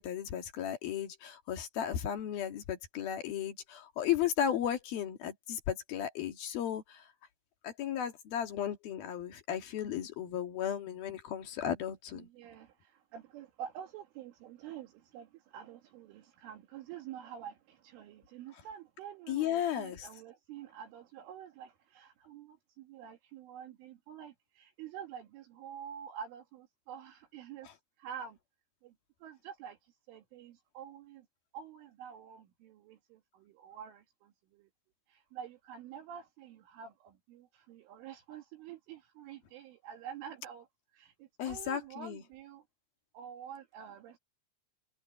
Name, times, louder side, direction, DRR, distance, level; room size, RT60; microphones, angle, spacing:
voice 1, 0.0-7.1 7.6-12.3 19.3-20.1 27.6-27.7 41.4-42.2, left 10 dB, 55° left, 3.4 m, -35 dB
voice 2, 12.1-27.7 28.0-28.4 28.8-28.9 29.2-29.8 30.1-31.3 31.5-34.7 35.1-40.7 40.9-42.6 43.1-44.2, right 9 dB, 75° right, 4.6 m, -48 dB
omnidirectional pair, 5.7 m